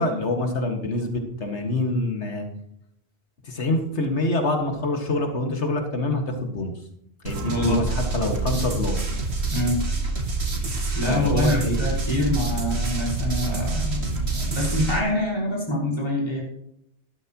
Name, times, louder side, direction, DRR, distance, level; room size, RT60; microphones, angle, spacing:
voice 1, 0.0-2.5 3.4-6.7 7.2-9.0 11.1-11.8, left 2 dB, 90° left, 3 dB, 2.3 m, -25 dB
sound 1, 7.3-15.0, right 3 dB, 75° right, 2.1 m, -27 dB
voice 2, 7.4-7.8 9.5-9.8 10.9-16.4, left 1 dB, 25° left, -4 dB, 5.5 m, -25 dB
13.5 x 12.5 x 3.1 m, 0.76 s
omnidirectional pair, 1.1 m